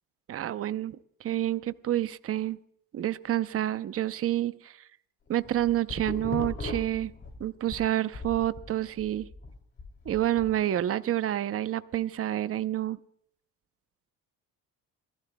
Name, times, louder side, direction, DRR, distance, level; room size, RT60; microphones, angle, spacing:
voice 1, 0.3-2.6 2.9-4.8 5.3-7.1 7.4-9.3 10.1-13.0, right 12 dB, 40° right, 14 dB, 0.6 m, -28 dB
sound 1, 5.3-7.8 8.1-10.5, left 3 dB, 35° left, 2.7 m, -38 dB
27.0 x 15.5 x 2.2 m, 0.69 s
cardioid pair, 115°, 35 cm